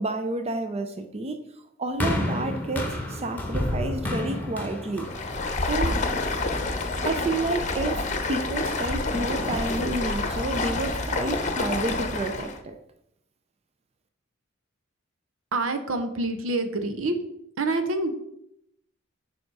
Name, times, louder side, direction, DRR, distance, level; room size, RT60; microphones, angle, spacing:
voice 1, 0.0-1.4 1.8-5.1 5.7-6.0 7.0-8.0 8.3-12.8, right 2 dB, 30° right, 7 dB, 0.5 m, -30 dB
sound 1, 2.0-6.3 7.1-7.2, left 1 dB, 10° left, 1.2 m, -30 dB
Stream, 5.0-12.6, left 2 dB, 35° left, 0.8 m, -28 dB
voice 2, 15.5-17.1 17.6-18.1, right 2 dB, 80° right, 8 dB, 0.9 m, -26 dB
7.7 x 4.9 x 4.7 m, 0.79 s
head